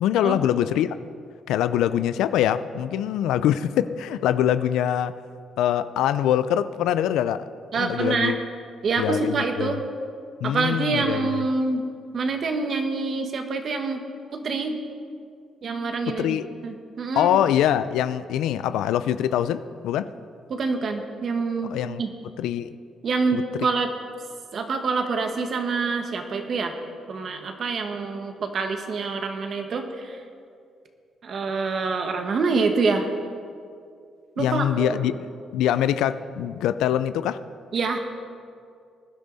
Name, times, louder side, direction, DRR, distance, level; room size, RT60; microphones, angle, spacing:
voice 1, 0.0-1.0 1.5-5.1 5.6-7.5 7.8-8.4 9.0-9.8 10.4-11.5 16.1-16.5 17.2-20.1 21.7-22.0 22.4-22.8 23.3-23.7 34.4-35.2 35.5-37.4, left 10 dB, 90° left, 13 dB, 0.4 m, -24 dB
voice 2, 7.7-8.4 8.8-9.8 10.4-11.8 12.1-14.0 14.3-14.8 15.6-16.4 16.6-17.4 20.5-21.7 22.0-22.1 23.0-23.9 24.5-26.8 27.1-30.2 31.2-33.1 34.4-35.0 37.7-38.0, right 4 dB, 55° right, 5 dB, 1.6 m, -26 dB
19.5 x 11.0 x 4.1 m, 2.3 s
cardioid pair, 90°, 0 cm